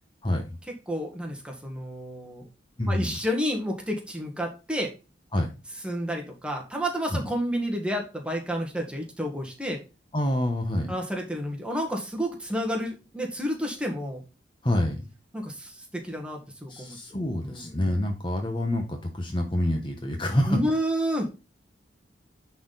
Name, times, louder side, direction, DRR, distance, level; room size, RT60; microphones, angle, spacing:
voice 1, 0.2-0.6 2.8-3.2 5.3-5.5 7.1-7.3 10.1-10.9 14.6-15.1 16.7-20.6, left 1 dB, 25° left, 4 dB, 1.0 m, -27 dB
voice 2, 0.9-2.5 2.9-4.9 5.8-9.8 10.9-14.2 15.3-17.0 17.4-17.7 20.5-21.3, equal, 5° right, 1 dB, 1.6 m, -30 dB
10.0 x 4.3 x 3.9 m, 0.30 s
head